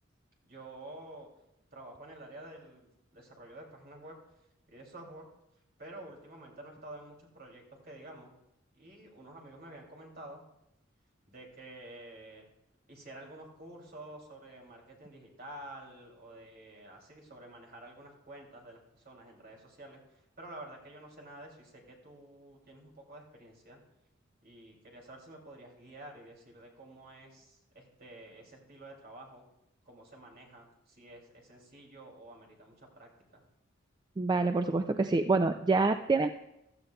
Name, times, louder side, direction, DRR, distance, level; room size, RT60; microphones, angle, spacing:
voice 1, 0.4-1.3 1.7-4.2 4.7-5.3 5.8-8.3 8.7-10.4 11.3-12.5 12.9-23.8 24.4-29.5 29.8-33.4, right 1 dB, 50° right, 0 dB, 2.8 m, -50 dB
voice 2, 34.2-36.3, right 3 dB, 20° right, 8 dB, 0.3 m, -26 dB
15.5 x 13.0 x 2.3 m, 0.86 s
head